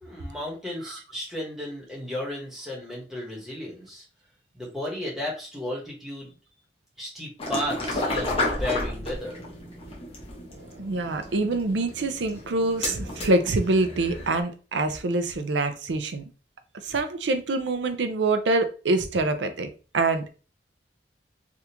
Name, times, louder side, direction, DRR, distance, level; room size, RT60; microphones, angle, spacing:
voice 1, 0.0-4.0 4.5-6.3 7.0-9.4, left 1 dB, ahead, -4 dB, 1.1 m, -34 dB
sound 1, 7.4-14.4, left 2 dB, 30° left, 0.9 m, -32 dB
voice 2, 10.5-16.2 16.8-19.7 19.9-20.3, right 2 dB, 80° right, 9 dB, 0.5 m, -25 dB
3.4 x 2.4 x 2.9 m, 0.35 s
head